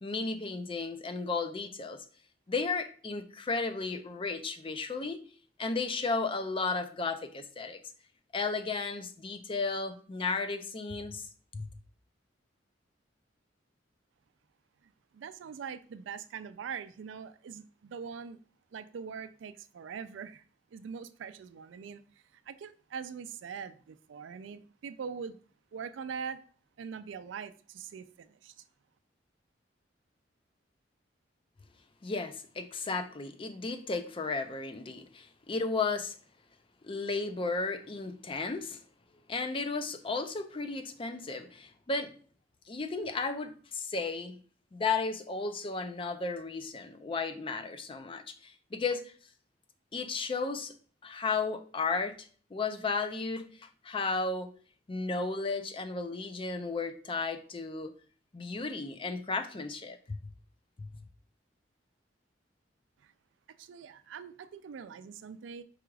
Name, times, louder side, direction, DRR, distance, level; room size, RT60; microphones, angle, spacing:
voice 1, 0.0-2.0 2.5-5.2 5.6-7.8 8.3-11.3 11.5-11.7 32.0-36.1 36.8-38.8 39.3-42.1 42.7-44.4 44.7-49.0 49.9-50.7 51.0-54.5 54.9-57.9 58.3-60.2 60.8-60.9, left 4 dB, 30° left, 0.5 m, -34 dB
voice 2, 14.8-18.4 18.7-20.4 20.7-22.0 22.3-25.4 25.7-26.4 26.8-28.5 63.0-63.1 63.6-65.6, right 6 dB, 85° right, 0.4 m, -42 dB
4.9 x 2.4 x 4.6 m
head